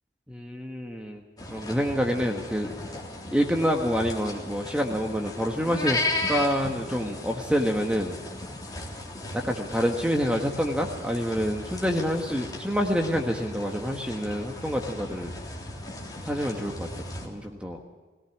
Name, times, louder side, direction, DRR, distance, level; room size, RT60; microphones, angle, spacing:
voice 1, 0.3-1.2 1.5-2.7 3.3-8.2 9.3-15.3 16.2-17.8, equal, 5° right, 2 dB, 1.5 m, -27 dB
sound 1, 1.4-17.3, left 2 dB, 25° left, 3.5 m, -36 dB
21.5 x 18.0 x 7.3 m, 1.3 s
head